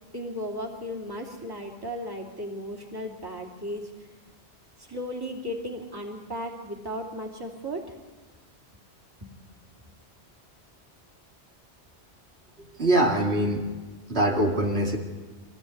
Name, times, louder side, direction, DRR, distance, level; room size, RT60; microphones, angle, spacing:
voice 1, 0.1-3.8 4.8-8.0 9.2-9.3, equal, 20° right, -1 dB, 2.9 m, -35 dB
voice 2, 12.8-13.6 14.1-15.0, right 1 dB, 70° right, 0 dB, 2.7 m, -23 dB
25.0 x 15.5 x 9.5 m, 1.3 s
omnidirectional pair, 1.1 m